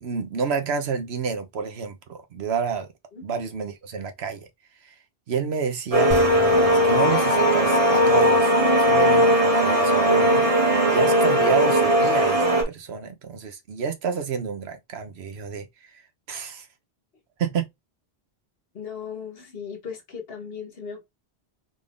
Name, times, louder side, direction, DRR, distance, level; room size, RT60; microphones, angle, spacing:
voice 1, 0.0-2.9 3.2-4.5 5.3-6.2 6.4-8.5 8.8-10.4 10.9-15.7 16.3-16.7 17.4-17.7, right 5 dB, 75° right, 1.1 m, -29 dB
sound 1, 5.9-12.6, equal, 35° right, 1.2 m, -18 dB
sound 2, 6.1-9.5, right 2 dB, 55° right, 1.9 m, -36 dB
voice 2, 18.7-21.1, left 6 dB, 65° left, 1.3 m, -37 dB
3.9 x 3.5 x 2.5 m
omnidirectional pair, 1.1 m